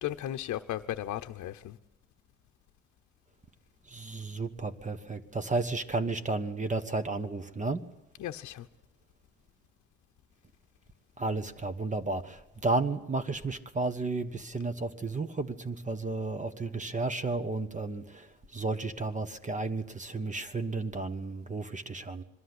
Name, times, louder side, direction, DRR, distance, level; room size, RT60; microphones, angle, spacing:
voice 1, 0.0-1.8 8.2-8.7, left 12 dB, 70° left, 0.8 m, -35 dB
voice 2, 3.9-7.8 11.2-18.3 18.5-22.2, right 3 dB, 25° right, 1.4 m, -33 dB
22.5 x 13.0 x 9.7 m
cardioid pair, 90°, 30 cm